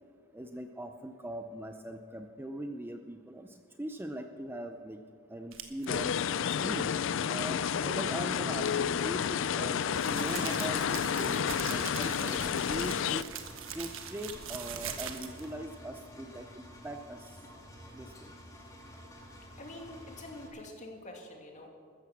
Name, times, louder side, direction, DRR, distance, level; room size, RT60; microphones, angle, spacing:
voice 1, 0.3-5.0 5.3-6.2 6.6-6.9 7.3-13.3 13.7-17.4 17.9-18.3, right 1 dB, 10° right, 6 dB, 0.6 m, -41 dB
sound 1, 5.5-5.9 9.0-15.5, right 8 dB, 75° right, 1.4 m, -42 dB
sound 2, 5.9-13.2, left 7 dB, 65° left, 0.4 m, -30 dB
Engine, 8.9-20.5, equal, 15° left, 2.3 m, -51 dB
voice 2, 19.6-21.7, left 1 dB, 35° left, 1 dB, 2.6 m, -46 dB
14.5 x 14.0 x 6.0 m, 2.3 s
head